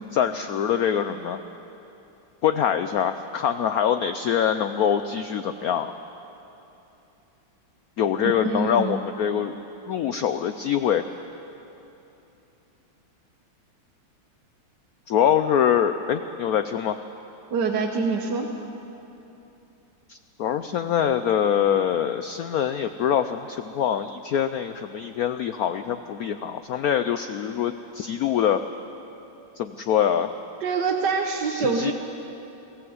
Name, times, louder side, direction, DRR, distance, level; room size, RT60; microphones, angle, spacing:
voice 1, 0.1-1.4 2.4-5.9 8.0-9.6 9.9-11.0 15.1-17.0 20.1-28.6 29.6-30.3 31.5-31.9, left 9 dB, 85° left, 10 dB, 0.8 m, -24 dB
voice 2, 8.2-9.0 17.5-18.5 30.6-31.9, right 4 dB, 60° right, 2 dB, 1.6 m, -25 dB
22.5 x 15.0 x 7.9 m, 3.0 s
omnidirectional pair, 2.2 m